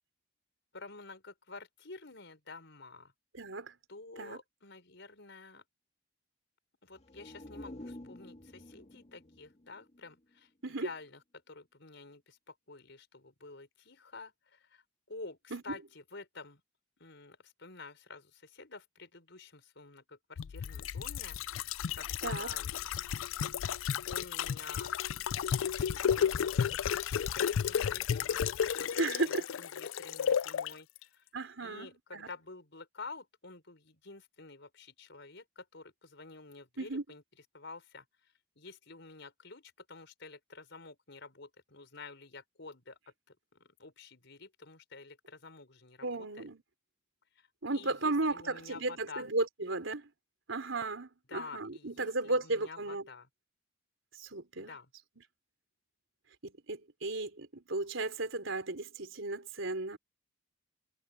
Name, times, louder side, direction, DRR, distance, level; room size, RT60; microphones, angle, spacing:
voice 1, 0.7-3.1 3.9-5.6 6.8-11.2 11.5-16.6 17.0-22.9 24.1-24.9 25.6-31.3 31.6-37.2 37.5-43.0 43.3-46.5 47.4-47.5 47.7-49.3 51.3-53.3 54.6-54.9, left 3 dB, 65° left, 5.6 m, -50 dB
voice 2, 3.3-3.7 4.2-4.4 10.6-10.9 15.5-15.6 22.2-22.5 29.0-29.4 31.3-32.3 36.8-37.0 46.0-46.6 47.6-50.1 50.5-53.0 54.1-54.7 56.4-60.0, right 2 dB, 75° right, 4.0 m, -35 dB
sound 1, 6.9-10.7 11.0-11.1, left 1 dB, 35° left, 2.1 m, -50 dB
sound 2, 20.4-30.7 31.0-31.1, left 8 dB, 85° left, 0.4 m, -33 dB
head